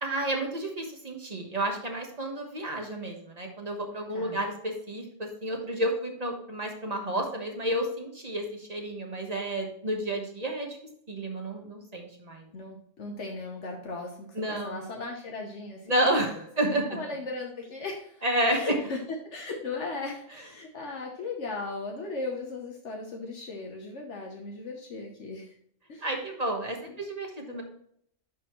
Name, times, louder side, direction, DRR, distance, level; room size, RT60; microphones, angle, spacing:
voice 1, 0.0-10.8 11.1-12.5 14.3-14.9 15.9-17.0 18.2-18.6 26.0-27.6, right 1 dB, 35° right, 2 dB, 1.3 m, -31 dB
voice 2, 4.1-4.4 12.5-15.9 16.2-16.5 16.9-19.0 19.2-25.6 25.9-26.1 26.9-27.0 27.5-27.6, left 3 dB, 70° left, 1 dB, 1.3 m, -37 dB
11.0 x 4.3 x 3.1 m, 0.66 s
omnidirectional pair, 1.3 m